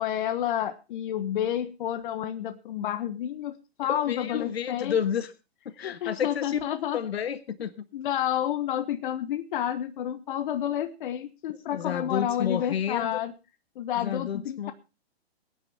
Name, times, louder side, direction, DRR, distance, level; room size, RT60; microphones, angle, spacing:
voice 1, 0.0-5.0 5.8-7.0 7.9-13.3 13.7-14.7, left 11 dB, 50° left, 10 dB, 1.3 m, -30 dB
voice 2, 3.8-5.3 5.8-6.6 6.9-7.7 11.7-13.2 13.9-14.7, left 8 dB, 70° left, 13 dB, 1.6 m, -30 dB
22.5 x 9.7 x 3.5 m, 0.30 s
hypercardioid pair, 125°, 32 cm